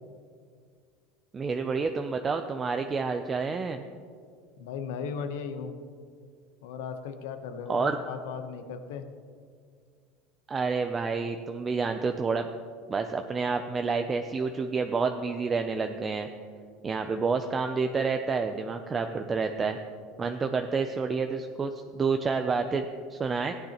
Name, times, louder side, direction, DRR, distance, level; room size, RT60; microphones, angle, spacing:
voice 1, 1.3-3.8 7.7-8.0 10.5-12.5 12.9-16.3 16.8-19.8 20.2-23.5, right 4 dB, 20° right, 6 dB, 0.4 m, -29 dB
voice 2, 4.6-5.7 6.6-9.0, left 6 dB, 85° left, 8 dB, 0.8 m, -36 dB
14.5 x 9.3 x 2.9 m, 2.1 s
supercardioid pair, 140°, 0 cm